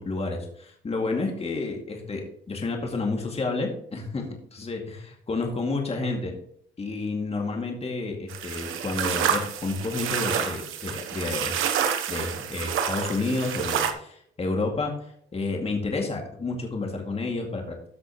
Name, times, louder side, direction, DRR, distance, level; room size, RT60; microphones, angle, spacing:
voice 1, 0.0-4.3 4.5-6.3 6.8-11.6 12.1-17.8, left 3 dB, 30° left, 1 dB, 2.3 m, -30 dB
sound 1, 8.3-13.9, right 8 dB, 80° right, 1.1 m, -28 dB
14.0 x 6.1 x 3.1 m, 0.66 s
cardioid pair, 90°, 20 cm